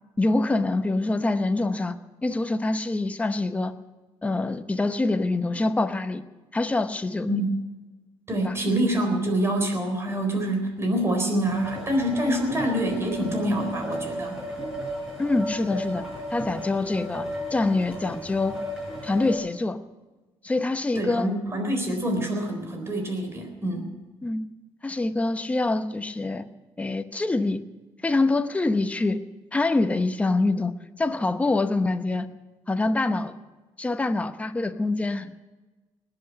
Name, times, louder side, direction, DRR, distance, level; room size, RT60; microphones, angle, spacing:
voice 1, 0.2-1.9 2.2-3.7 4.2-6.2 6.5-7.3 8.4-8.5 15.2-16.0 16.3-18.6 19.0-19.8 20.4-21.3 24.2-24.5 24.8-26.4 26.8-27.6 28.0-29.2 29.5-30.7 31.0-32.3 32.7-33.4 33.8-35.4, left 2 dB, 15° left, 9 dB, 0.9 m, -25 dB
voice 2, 8.3-14.4 21.0-23.9, right 1 dB, 25° right, 3 dB, 4.0 m, -26 dB
sound 1, 11.4-19.3, equal, 5° right, 5.3 m, -35 dB
19.5 x 8.0 x 9.1 m, 1.2 s
cardioid pair, 115°, 10 cm